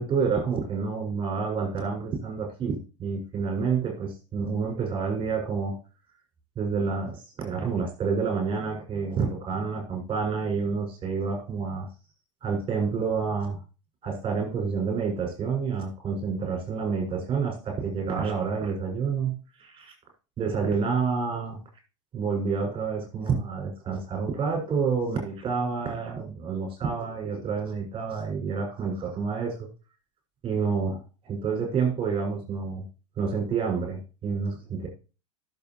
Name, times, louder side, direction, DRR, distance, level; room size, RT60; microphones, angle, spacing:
voice 1, 0.0-5.8 6.6-11.9 12.4-13.6 14.0-19.9 20.4-21.6 22.1-29.7 30.4-32.8 33.2-34.9, right 5 dB, 30° right, 2 dB, 6.0 m, -28 dB
12.0 x 7.1 x 3.1 m, 0.33 s
hypercardioid pair, 105°, 16 cm